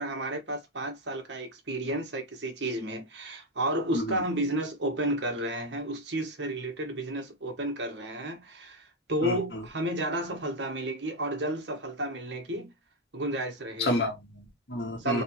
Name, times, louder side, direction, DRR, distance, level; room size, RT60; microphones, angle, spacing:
voice 1, 0.0-12.7 13.1-13.9 15.0-15.2, right 1 dB, 85° right, 1.4 m, -32 dB
voice 2, 3.9-4.2 9.2-9.6 13.8-15.2, left 1 dB, 75° left, 2.1 m, -30 dB
4.2 x 3.3 x 3.0 m
head